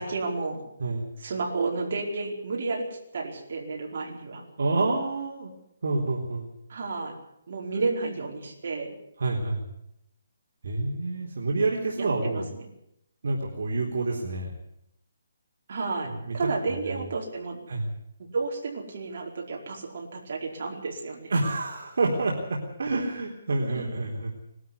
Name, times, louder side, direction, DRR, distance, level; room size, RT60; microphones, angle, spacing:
voice 1, 0.0-0.6 1.2-4.4 6.7-7.1 7.5-8.9 12.0-12.6 15.7-17.6 18.3-21.3 23.7-23.8, right 3 dB, 45° right, -1 dB, 4.9 m, -32 dB
voice 2, 4.6-5.5 5.8-6.5 7.7-8.1 9.2-9.6 10.6-12.5 13.2-14.5 16.0-16.4 16.7-17.0 17.7-17.9 21.3-24.3, right 3 dB, 60° right, -1 dB, 3.8 m, -28 dB
21.0 x 13.0 x 9.8 m, 0.78 s
hypercardioid pair, 175°, 0 cm